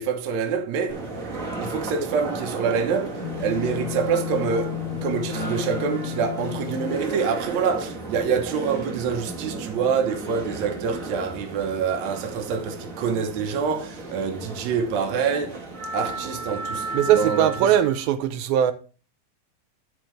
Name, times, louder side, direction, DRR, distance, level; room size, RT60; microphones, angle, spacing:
voice 1, 0.0-1.3 1.6-15.6 15.9-17.7, right 6 dB, 60° right, 2.2 m, -26 dB
sound 1, 0.9-18.0, right 2 dB, 30° right, 1.6 m, -34 dB
sound 2, 3.2-7.1, left 23 dB, 90° left, 2.4 m, -33 dB
voice 2, 16.9-18.7, right 10 dB, 85° right, 2.5 m, -20 dB
11.5 x 6.1 x 3.3 m
omnidirectional pair, 4.2 m